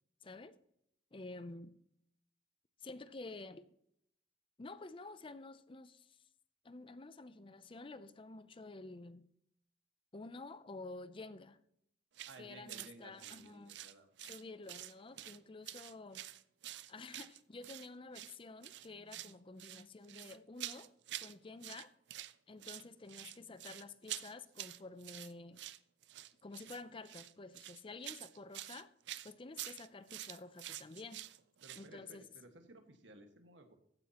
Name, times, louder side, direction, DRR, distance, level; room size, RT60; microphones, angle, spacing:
voice 1, 0.2-0.6 1.1-1.7 2.8-3.7 4.6-6.2 6.6-9.2 10.1-11.6 12.4-13.8 14.2-16.3 16.9-20.9 21.2-21.9 22.5-25.6 26.4-28.9 29.2-31.2 31.8-32.2, left 3 dB, 30° left, 0.5 m, -50 dB
sound 1, 12.1-12.4 12.7-12.9 13.2-14.4 14.7-15.4 15.7-17.9 18.1-18.4 18.6-19.3 19.6-21.3 21.6-22.3 22.6-31.9, right 14 dB, 65° right, 0.5 m, -47 dB
voice 2, 12.3-14.4 31.6-33.8, right 2 dB, 85° right, 1.7 m, -57 dB
14.5 x 9.8 x 3.0 m
head